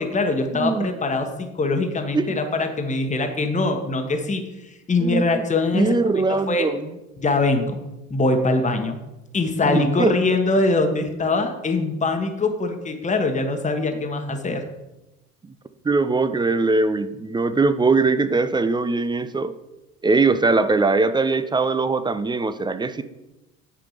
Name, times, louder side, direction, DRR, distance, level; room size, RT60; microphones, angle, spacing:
voice 1, 0.0-6.7 7.2-7.8 8.1-9.0 9.3-14.6, left 2 dB, 20° left, 5 dB, 1.3 m, -23 dB
voice 2, 0.5-0.9 2.1-2.3 5.0-5.2 5.7-6.9 9.6-10.1 15.8-19.5 20.0-23.0, right 3 dB, 10° right, 12 dB, 0.5 m, -21 dB
9.3 x 5.0 x 5.0 m, 0.98 s
figure-of-eight pair, 65°, 40 cm